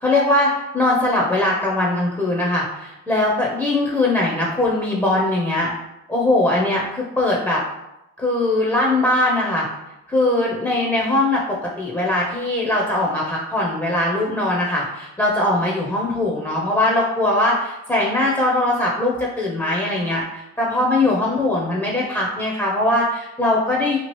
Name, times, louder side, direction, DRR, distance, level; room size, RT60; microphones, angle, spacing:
voice 1, 0.0-5.7 6.1-7.6 8.2-9.7 10.1-24.0, left 2 dB, 10° left, -3 dB, 0.5 m, -21 dB
2.9 x 2.3 x 3.0 m, 0.90 s
cardioid pair, 90°, 30 cm